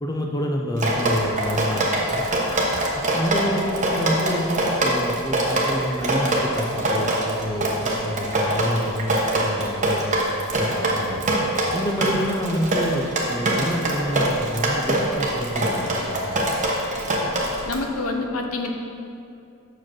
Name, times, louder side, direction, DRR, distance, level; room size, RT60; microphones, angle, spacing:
voice 1, 0.0-2.2 3.1-10.1 10.6-11.2 11.7-16.3, equal, 15° left, 1 dB, 0.5 m, -28 dB
Drip, 0.8-17.8, right 1 dB, 35° right, 0.9 m, -23 dB
voice 2, 17.6-18.7, left 3 dB, 75° left, 3 dB, 0.8 m, -27 dB
6.0 x 4.7 x 6.1 m, 2.6 s
head